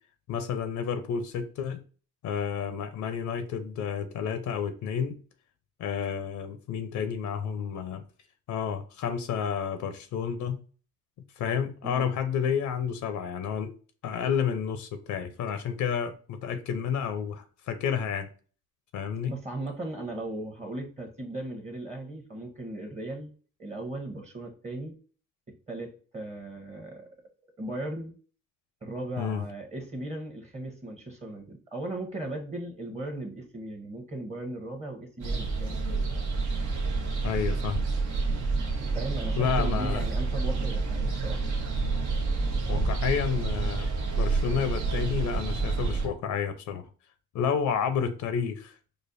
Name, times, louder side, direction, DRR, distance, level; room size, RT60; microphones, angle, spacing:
voice 1, 0.3-1.8 2.2-5.2 5.8-8.0 8.5-10.6 11.4-13.7 14.0-18.3 18.9-19.4 29.2-29.4 37.2-37.9 39.4-40.0 42.7-46.9 47.3-48.8, left 7 dB, 70° left, 0.5 m, -30 dB
voice 2, 19.3-23.3 23.6-25.0 25.7-27.1 27.6-28.1 28.8-35.8 38.8-41.5, right 2 dB, 20° right, 0.8 m, -37 dB
sound 1, 35.2-46.1, right 3 dB, 80° right, 0.9 m, -28 dB
5.1 x 2.1 x 2.5 m
cardioid pair, 90°, 30 cm